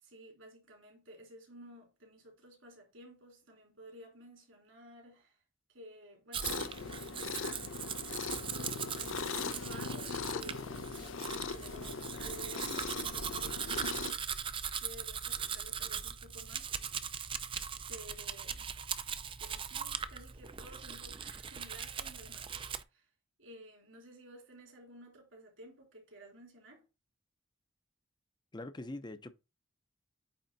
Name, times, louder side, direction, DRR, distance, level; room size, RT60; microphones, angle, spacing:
voice 1, 0.0-5.4 5.7-7.7 9.0-14.2 14.7-17.1 17.9-18.7 19.4-23.1 23.4-26.8, right 1 dB, 75° right, 3.4 m, -54 dB
Domestic sounds home sounds, 6.3-22.8, right 7 dB, 25° right, 0.4 m, -40 dB
sound 1, 6.4-14.1, left 5 dB, 80° left, 0.6 m, -40 dB
voice 2, 28.5-29.3, left 2 dB, 20° left, 0.6 m, -43 dB
8.7 x 3.7 x 4.0 m
head